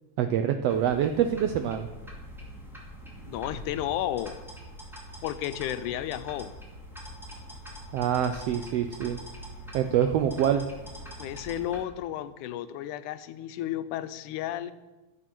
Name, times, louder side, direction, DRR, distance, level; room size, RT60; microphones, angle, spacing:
voice 1, 0.2-1.9 7.9-9.2 9.7-10.7, right 9 dB, 85° right, 8 dB, 1.4 m, -25 dB
sound 1, 0.7-11.8, equal, ahead, 1.9 m, -44 dB
voice 2, 3.3-4.4 5.2-6.5 11.2-14.7, left 12 dB, 85° left, 12 dB, 2.1 m, -32 dB
13.5 x 7.7 x 6.1 m, 1.1 s
omnidirectional pair, 3.5 m